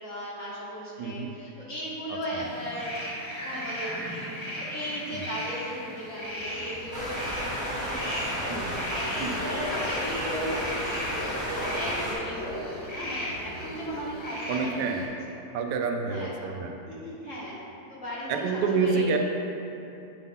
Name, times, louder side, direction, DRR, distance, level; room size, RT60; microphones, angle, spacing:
voice 1, 0.0-3.0 3.4-15.1 16.1-16.5 16.9-17.6 17.9-19.2, equal, 55° left, -7 dB, 1.2 m, -37 dB
voice 2, 1.0-1.3 2.3-2.4 5.1-5.2 8.5-8.7 9.2-9.4 14.5-15.0 15.5-16.8 18.3-19.2, right 5 dB, 90° right, 4 dB, 1.2 m, -28 dB
sound 1, 2.4-15.0, equal, 20° left, 1.1 m, -37 dB
Subway metro underground, 6.2-14.1, left 1 dB, 90° left, 1.7 m, -38 dB
sound 2, 6.9-12.1, equal, 5° right, 1.0 m, -33 dB
7.5 x 3.8 x 3.6 m, 2.7 s
omnidirectional pair, 1.8 m